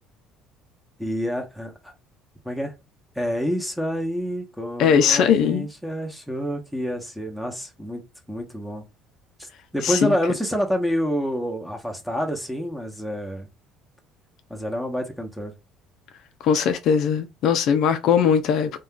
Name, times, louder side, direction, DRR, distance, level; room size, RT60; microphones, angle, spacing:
voice 1, 1.0-1.9 2.4-2.7 3.2-8.9 9.4-13.5 14.5-15.5, equal, ahead, 0.9 m, -28 dB
voice 2, 4.8-5.7 9.8-10.1 16.4-18.7, left 7 dB, 65° left, 0.4 m, -19 dB
2.4 x 2.2 x 3.7 m
supercardioid pair, 100°, 0 cm